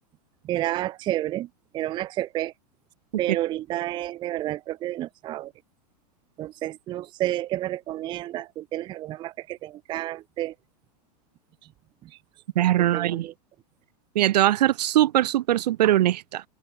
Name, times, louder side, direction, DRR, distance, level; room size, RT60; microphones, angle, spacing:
voice 1, 0.4-1.5 1.7-2.5 3.2-5.5 6.4-10.5 12.0-12.2 12.8-13.3, right 14 dB, 20° right, 0.5 m, -30 dB
voice 2, 12.5-13.3 14.1-16.4, right 13 dB, 80° right, 1.6 m, -21 dB
open air
supercardioid pair, 150°, 21 cm